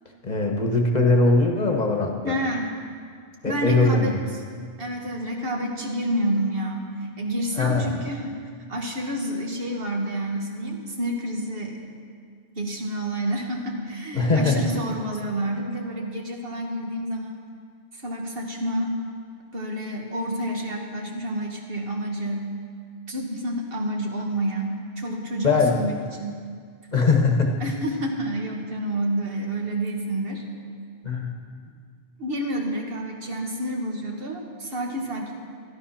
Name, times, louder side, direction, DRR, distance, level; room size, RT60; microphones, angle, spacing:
voice 1, 0.2-2.3 3.4-4.2 7.6-8.0 14.1-14.6 25.4-25.8 26.9-27.6 31.0-31.3, left 3 dB, 40° left, 2 dB, 1.3 m, -21 dB
voice 2, 2.2-2.7 3.4-4.4 4.8-8.3 8.7-11.8 12.6-17.3 17.9-19.0 19.5-22.5 23.1-26.4 27.6-30.4 32.2-35.3, right 1 dB, 60° right, 1 dB, 1.8 m, -29 dB
13.0 x 12.0 x 5.7 m, 2.1 s
omnidirectional pair, 1.1 m